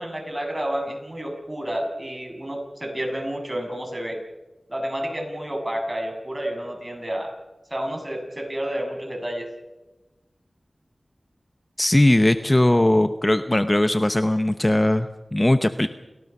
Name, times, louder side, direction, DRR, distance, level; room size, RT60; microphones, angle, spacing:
voice 1, 0.0-4.2 4.7-7.3 7.7-9.5, equal, 20° right, 2 dB, 6.9 m, -30 dB
voice 2, 11.8-15.9, left 1 dB, 20° left, 9 dB, 0.9 m, -19 dB
29.5 x 19.0 x 5.6 m, 1.1 s
wide cardioid pair, 75°, 0 cm